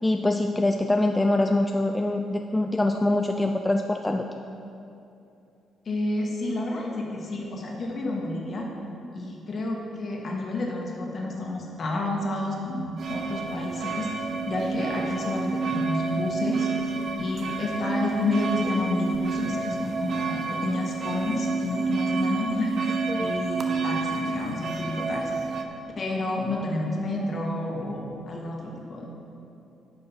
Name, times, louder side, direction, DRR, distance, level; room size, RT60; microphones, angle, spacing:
voice 1, 0.0-4.3 23.1-23.5, left 2 dB, 15° left, 4 dB, 0.4 m, -24 dB
voice 2, 5.9-8.7 9.1-14.1 14.5-16.7 17.2-22.7 23.2-25.3 26.0-29.1, left 2 dB, 45° left, -1 dB, 1.8 m, -30 dB
sound 1, 13.0-25.6, right 4 dB, 55° right, 0.8 m, -29 dB
10.5 x 5.4 x 5.7 m, 2.7 s
cardioid pair, 90°, 0 cm